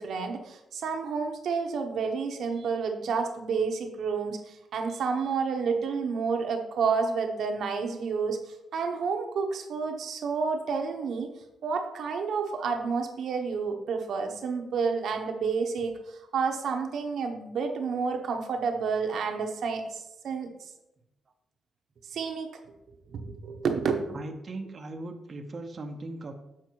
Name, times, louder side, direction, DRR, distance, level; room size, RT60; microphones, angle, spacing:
voice 1, 0.0-8.4 8.7-11.3 11.6-20.5 22.1-22.5 23.1-24.1, right 5 dB, 60° right, 4 dB, 1.0 m, -30 dB
voice 2, 24.1-26.3, right 2 dB, 30° right, 4 dB, 0.6 m, -38 dB
7.3 x 5.2 x 4.6 m, 0.88 s
wide cardioid pair, 180°, 0 cm